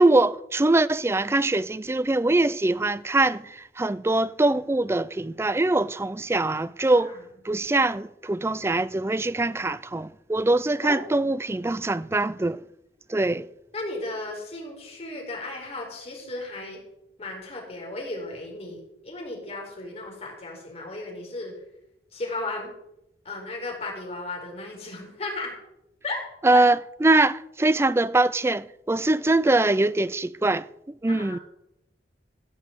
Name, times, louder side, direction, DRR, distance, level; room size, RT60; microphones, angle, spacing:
voice 1, 0.0-7.1 7.5-12.6 13.1-13.5 26.4-30.6 31.0-31.4, right 2 dB, 15° right, 0.4 m, -23 dB
voice 2, 6.9-7.2 10.8-11.0 13.7-16.8 17.2-21.5 22.1-22.7 23.2-25.5 26.0-26.2 26.5-26.6 31.2-31.4, left 2 dB, 35° left, 4.4 m, -35 dB
15.5 x 6.4 x 8.1 m
head